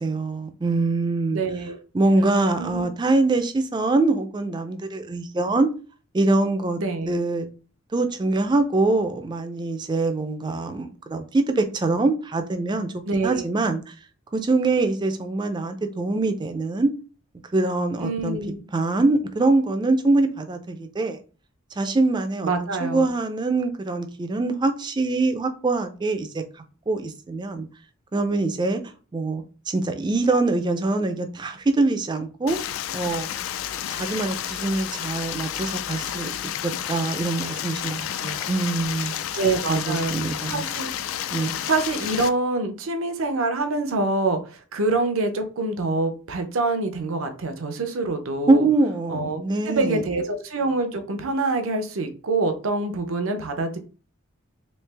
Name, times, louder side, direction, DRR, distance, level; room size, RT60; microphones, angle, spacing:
voice 1, 0.0-1.4 1.9-5.7 6.1-6.8 7.1-7.5 7.9-13.9 14.3-16.9 17.5-18.4 18.7-21.2 21.8-22.5 22.8-27.7 28.1-28.8 29.1-32.6 32.9-33.4 33.9-36.3 36.9-39.1 39.7-40.6 41.3-41.6 48.5-50.0, right 2 dB, 20° right, 0.3 m, -24 dB
voice 2, 1.3-1.8 2.6-2.9 6.8-7.1 13.1-13.5 18.0-18.7 22.4-23.1 39.4-40.9 41.7-48.7 49.1-53.8, right 3 dB, 75° right, 0.6 m, -26 dB
Stream, 32.5-42.3, left 10 dB, 75° left, 0.3 m, -31 dB
3.2 x 2.8 x 3.3 m
head